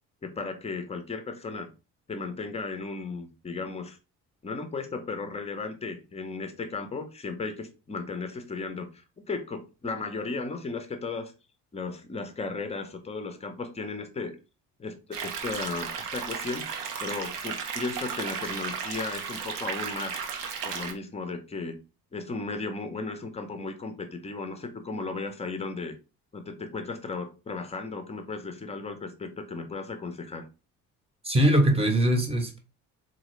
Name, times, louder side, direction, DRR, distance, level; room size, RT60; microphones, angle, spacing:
voice 1, 0.2-1.7 2.1-4.0 4.4-11.3 11.7-14.4 14.8-16.7 17.0-20.2 20.6-21.8 22.1-25.9 26.3-30.5, left 3 dB, 15° left, 7 dB, 0.7 m, -35 dB
sound 1, 15.1-20.9, right 6 dB, 80° right, 0.6 m, -34 dB
voice 2, 31.2-32.6, right 1 dB, 15° right, 5 dB, 0.9 m, -22 dB
3.8 x 2.6 x 3.1 m, 0.31 s
figure-of-eight pair, 50°, 45 cm